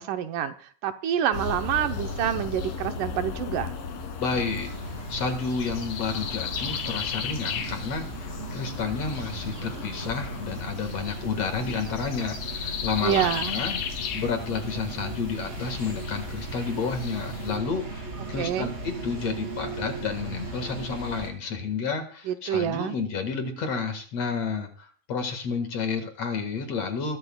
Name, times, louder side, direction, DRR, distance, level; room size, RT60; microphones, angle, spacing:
voice 1, 0.0-3.7 13.0-13.5 18.4-18.8 22.3-23.0, right 10 dB, 75° right, 8 dB, 2.3 m, -27 dB
sound 1, 1.3-17.6, left 6 dB, 90° left, 3.5 m, -35 dB
voice 2, 4.2-4.7 5.1-13.8 14.1-27.2, left 5 dB, 55° left, 6 dB, 2.5 m, -31 dB
sound 2, 4.3-21.3, right 3 dB, 20° right, 2.8 m, -37 dB
21.5 x 12.5 x 2.3 m, 0.44 s
omnidirectional pair, 3.9 m